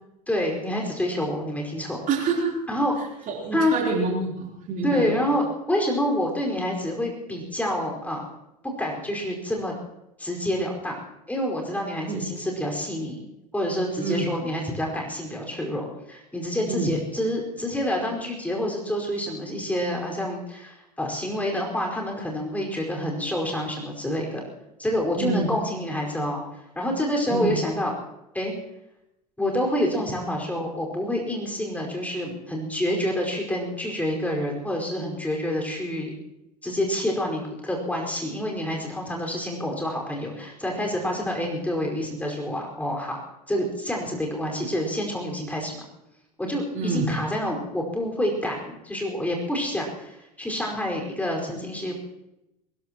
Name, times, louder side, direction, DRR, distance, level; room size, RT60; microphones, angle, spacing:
voice 1, 0.3-2.0 2.7-3.0 3.5-3.7 4.8-8.2 8.8-9.7 10.2-11.0 11.3-13.3 13.5-24.4 24.8-26.4 26.7-27.9 28.3-28.5 29.4-36.1 36.6-43.2 43.5-45.8 46.4-51.9, left 1 dB, 5° left, -1 dB, 5.0 m, -27 dB
voice 2, 2.1-2.5 3.3-5.1 12.1-12.2 14.0-14.3 16.7-16.9 25.2-25.5 27.3-27.6 46.7-47.1, right 3 dB, 40° right, -1 dB, 3.8 m, -26 dB
23.0 x 20.5 x 3.0 m, 0.88 s
figure-of-eight pair, 70°, 21 cm